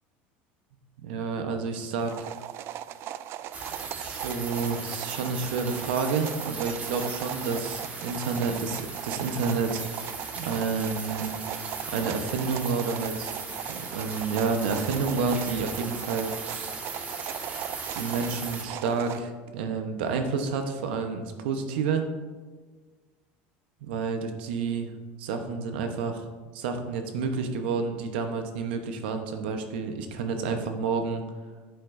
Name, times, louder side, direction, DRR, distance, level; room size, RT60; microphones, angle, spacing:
voice 1, 1.0-2.3 4.0-9.8 10.4-11.3 11.9-13.3 13.7-16.7 17.9-22.1 23.8-24.9 25.2-26.2 26.5-31.2, right 5 dB, 90° right, 6 dB, 1.0 m, -29 dB
sound 1, 2.0-19.2, right 12 dB, 50° right, 0.4 m, -39 dB
sound 2, 3.5-18.6, right 3 dB, 30° right, 1.6 m, -38 dB
11.0 x 8.3 x 2.7 m, 1.4 s
supercardioid pair, 115°, 5 cm